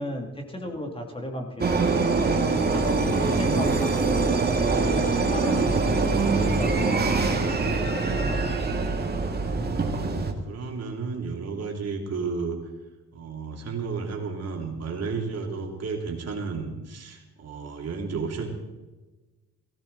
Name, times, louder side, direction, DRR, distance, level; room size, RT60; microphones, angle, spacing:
voice 1, 0.0-2.1 2.6-4.3 4.7-8.8, left 1 dB, 20° left, 2 dB, 2.7 m, -35 dB
sound 1, 1.6-10.3, right 3 dB, 35° right, 2.1 m, -24 dB
voice 2, 2.5-3.1 4.7-4.9 7.4-7.9 9.4-12.6 13.1-18.5, right 4 dB, 55° right, 1 dB, 2.9 m, -33 dB
16.0 x 16.0 x 4.1 m, 1.2 s
cardioid pair, 90°, 30 cm